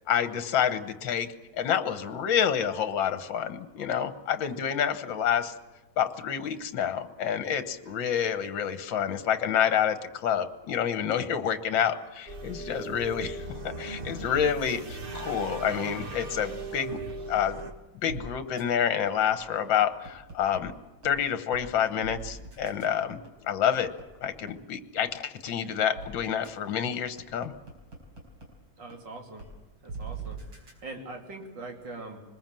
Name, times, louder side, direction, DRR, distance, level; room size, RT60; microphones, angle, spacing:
voice 1, 0.1-1.3 1.6-5.5 6.0-10.0 10.2-13.4 13.8-17.0 17.3-17.6 18.0-20.7 21.0-23.2 23.5-23.9 24.2-27.5, left 8 dB, 65° left, 10 dB, 1.9 m, -28 dB
sound 1, 12.3-17.7, right 3 dB, 30° right, 1.3 m, -38 dB
sound 2, 15.1-16.7 17.1-17.2 17.6-17.7 18.1-18.2 18.6-18.7 19.1-20.6 21.0-21.1 21.5-21.6 22.0-24.5 25.0-25.1 25.5-25.6 25.9-26.1 26.4-26.5 26.9-28.5 28.9-29.0 29.4-29.5 29.9-30.7, right 4 dB, 75° right, 5.3 m, -41 dB
voice 2, 28.8-29.4 29.8-30.4 30.8-32.2, right 2 dB, 55° right, 2 dB, 3.7 m, -41 dB
24.5 x 20.5 x 7.6 m, 1.1 s
omnidirectional pair, 2.3 m